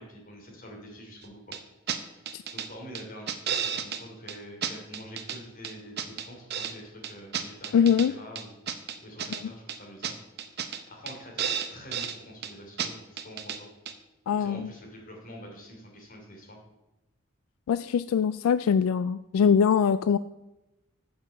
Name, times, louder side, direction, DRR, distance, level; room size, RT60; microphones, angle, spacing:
voice 1, 0.0-1.5 1.9-8.6 9.0-10.1 10.5-13.7 14.3-16.6, equal, 40° left, 0 dB, 2.9 m, -46 dB
sound 1, 1.5-1.6 1.9-2.0 2.3-2.7 3.0-4.0 4.3-4.4 4.6-5.4 5.6-6.7 7.0-8.1 8.4-9.4 9.7-9.8 10.0-10.1 10.4-10.8 11.1-11.2 11.4-12.2 12.4-12.5 12.8-12.9 13.2-13.6 13.9-14.0, right 8 dB, 50° right, 0.8 m, -32 dB
voice 2, 7.7-8.1 14.3-14.7 17.7-20.2, left 7 dB, 85° left, 15 dB, 0.3 m, -23 dB
7.4 x 7.2 x 6.8 m, 0.98 s
head